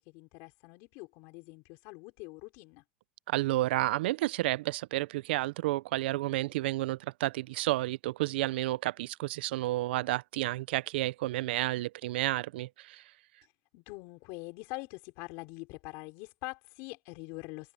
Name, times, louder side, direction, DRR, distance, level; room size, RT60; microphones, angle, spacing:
voice 1, 0.0-2.8 13.7-17.7, left 25 dB, 45° left, 5.0 m, -44 dB
voice 2, 3.3-13.0, right 17 dB, 80° right, 0.4 m, -31 dB
supercardioid pair, 170°, 6 cm